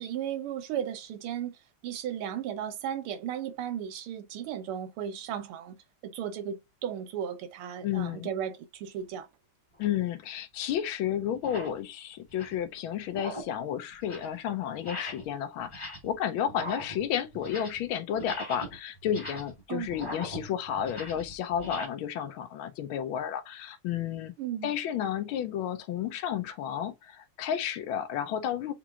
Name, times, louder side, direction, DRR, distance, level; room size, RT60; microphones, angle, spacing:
voice 1, 0.0-1.5 1.8-5.8 6.0-9.3 19.7-19.9 24.4-24.7, right 9 dB, 90° right, 1.7 m, -35 dB
voice 2, 7.8-8.3 9.8-24.3 24.6-28.7, left 9 dB, 75° left, 1.5 m, -32 dB
sound 1, 9.8-10.0 10.7-10.8 11.3-11.8 12.2-12.7 13.1-13.6 13.9-14.4 14.8-15.3 15.6-16.2 16.5-17.9 18.2-21.9, equal, 20° left, 0.9 m, -41 dB
7.0 x 3.0 x 2.4 m
omnidirectional pair, 2.3 m